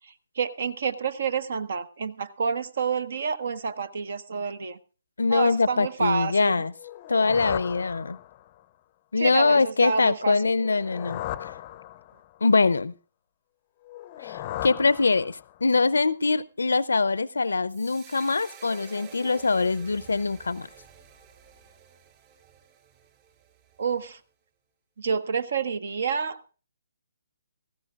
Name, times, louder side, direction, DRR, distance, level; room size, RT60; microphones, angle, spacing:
voice 1, 0.4-4.8 5.3-6.6 9.2-10.4 23.8-24.2 25.0-26.5, right 6 dB, 60° right, 15 dB, 1.0 m, -28 dB
voice 2, 5.2-6.7 7.1-8.2 9.1-11.5 12.4-12.9 14.2-20.7, left 4 dB, 80° left, 19 dB, 0.5 m, -23 dB
sound 1, 6.8-8.6 10.5-12.4 13.8-15.7, left 13 dB, 35° left, 0.6 m, -37 dB
sound 2, 17.7-24.1, right 8 dB, 30° right, 3.1 m, -50 dB
17.5 x 15.0 x 2.4 m, 0.36 s
figure-of-eight pair, 140°, 0 cm